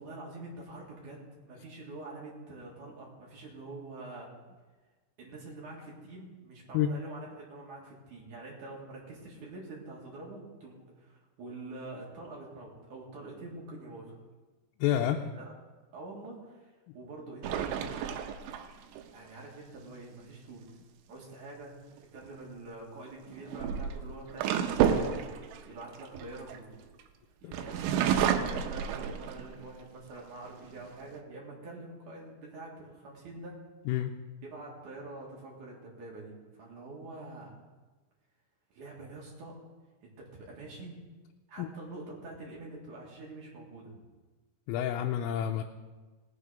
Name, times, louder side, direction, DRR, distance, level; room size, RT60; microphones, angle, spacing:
voice 1, 0.0-4.3 5.2-14.2 14.9-15.5 15.9-17.9 19.1-20.7 21.1-25.1 25.7-26.7 27.4-33.6 34.4-37.6 38.7-39.6 40.0-41.0 41.5-44.0, right 2 dB, 50° right, -3 dB, 2.7 m, -46 dB
voice 2, 14.8-15.2 27.4-27.5 33.9-34.1 41.6-41.7 44.7-45.6, left 11 dB, 90° left, 3 dB, 3.3 m, -29 dB
sound 1, 17.4-19.0 22.0-22.3 23.3-27.0 27.5-29.7 30.2-30.3 30.6-31.2, right 8 dB, 80° right, 3.0 m, -30 dB
19.0 x 7.4 x 5.0 m, 1.3 s
omnidirectional pair, 5.7 m